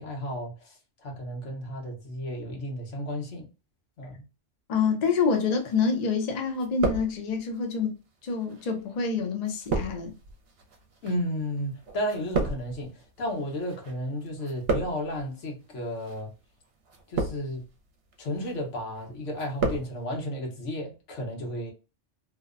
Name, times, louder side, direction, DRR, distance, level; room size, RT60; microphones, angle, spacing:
voice 1, 0.0-3.5 4.0-4.2 11.0-16.3 17.1-17.6 18.2-21.7, equal, 80° left, 1.2 m, -33 dB
voice 2, 4.7-7.9 8.2-10.1, left 5 dB, 50° left, 0.5 m, -27 dB
sound 1, 5.7-6.3 6.5-7.6 8.3-13.9 14.2-15.2 15.9-16.2 16.9-17.7 18.1-18.6 18.9-19.9 20.2-20.3, right 3 dB, 60° right, 0.8 m, -32 dB
2.8 x 2.1 x 2.4 m
omnidirectional pair, 1.2 m